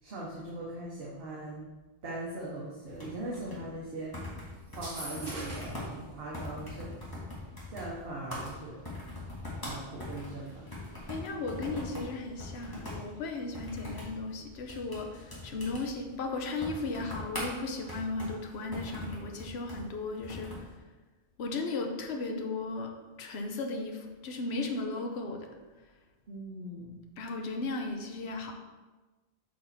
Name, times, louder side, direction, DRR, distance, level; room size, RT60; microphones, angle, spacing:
voice 1, 0.0-1.7 2.0-4.2 4.7-7.3 7.7-8.8 9.6-10.7 26.3-27.1, right 2 dB, 70° right, -4 dB, 1.2 m, -40 dB
sound 1, 2.9-20.7, left 1 dB, 20° left, 1.5 m, -42 dB
sound 2, 4.7-5.9, right 1 dB, 45° right, 1.6 m, -41 dB
voice 2, 11.1-20.7 21.4-25.5 27.2-28.5, left 3 dB, 80° left, 3 dB, 1.0 m, -36 dB
6.6 x 4.3 x 4.1 m, 1.2 s
omnidirectional pair, 1.1 m